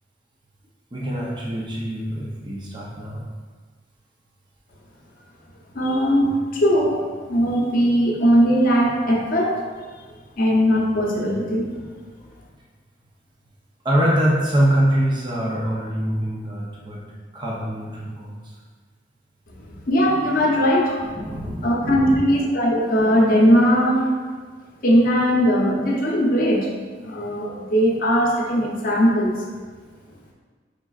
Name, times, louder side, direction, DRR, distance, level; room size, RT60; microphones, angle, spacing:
voice 1, 0.9-3.2 13.8-17.0 17.3-18.5 21.2-22.2, right 1 dB, 25° right, -4 dB, 0.5 m, -24 dB
voice 2, 5.7-7.0 7.3-9.6 10.4-11.7 19.6-21.1 21.6-24.2 24.8-26.7 27.0-29.4, equal, 50° left, -2 dB, 0.7 m, -19 dB
5.2 x 3.6 x 2.4 m, 1.5 s
head